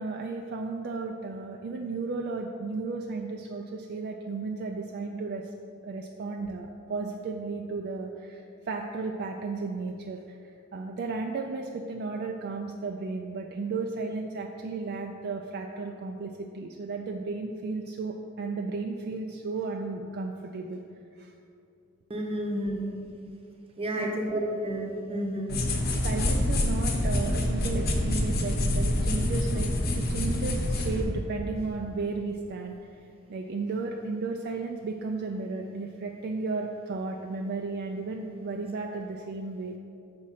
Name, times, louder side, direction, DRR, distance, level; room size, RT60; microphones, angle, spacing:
voice 1, 0.0-5.5 5.8-20.8 21.1-21.3 23.9-24.2 26.0-32.8 33.3-39.8, right 3 dB, 50° right, 2 dB, 0.4 m, -34 dB
voice 2, 22.1-22.9 23.8-25.5, right 1 dB, 30° right, 1 dB, 0.8 m, -30 dB
sound 1, 25.5-31.0, left 1 dB, 50° left, 0.8 m, -26 dB
6.1 x 4.3 x 5.6 m, 2.5 s
head